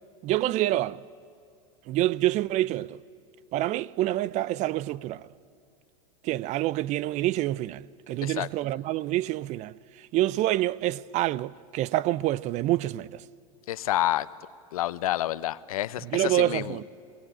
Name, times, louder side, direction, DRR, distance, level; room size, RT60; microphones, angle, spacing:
voice 1, 0.2-1.0 1.9-3.0 3.5-5.2 6.2-9.7 10.1-13.2 16.1-16.8, right 15 dB, 40° right, 0.5 m, -27 dB
voice 2, 13.7-14.3 14.7-16.8, left 14 dB, 75° left, 0.8 m, -28 dB
28.5 x 20.0 x 8.9 m
hypercardioid pair, 110°, 19 cm